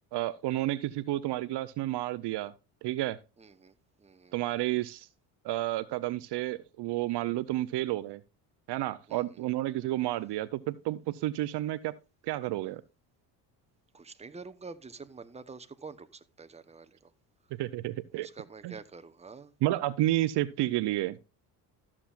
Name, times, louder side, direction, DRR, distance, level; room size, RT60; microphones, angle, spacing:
voice 1, 0.1-2.5 2.8-3.2 4.3-5.1 5.4-8.2 8.7-11.9 12.3-12.8 17.6-18.3 18.6-18.8 19.6-21.2, right 16 dB, 60° right, 0.7 m, -31 dB
voice 2, 3.4-4.3 9.1-9.4 13.9-17.1 18.2-19.5, right 4 dB, 15° right, 0.9 m, -47 dB
13.5 x 7.3 x 2.4 m
supercardioid pair, 75°, 46 cm